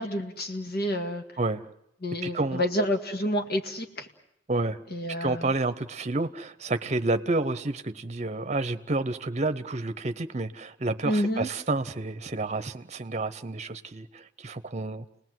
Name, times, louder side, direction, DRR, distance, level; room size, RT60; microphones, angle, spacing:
voice 1, 0.0-1.2 2.0-4.1 4.9-5.5 11.0-11.5, equal, 60° left, 5 dB, 2.0 m, -29 dB
voice 2, 2.2-2.6 4.5-4.8 5.2-15.0, right 2 dB, 40° right, 11 dB, 0.9 m, -30 dB
30.0 x 19.5 x 7.8 m, 0.78 s
head